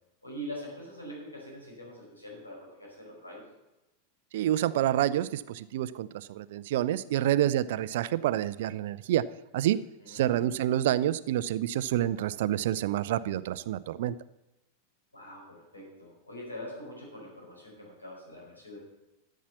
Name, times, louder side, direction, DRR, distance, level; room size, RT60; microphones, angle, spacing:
voice 1, 0.2-3.4 10.0-10.6 15.1-18.8, equal, 80° left, -2 dB, 5.0 m, -43 dB
voice 2, 4.3-9.2 9.5-9.8 10.1-14.2, right 12 dB, 55° right, 16 dB, 0.5 m, -28 dB
12.5 x 7.4 x 7.0 m, 0.99 s
figure-of-eight pair, 90°, 0 cm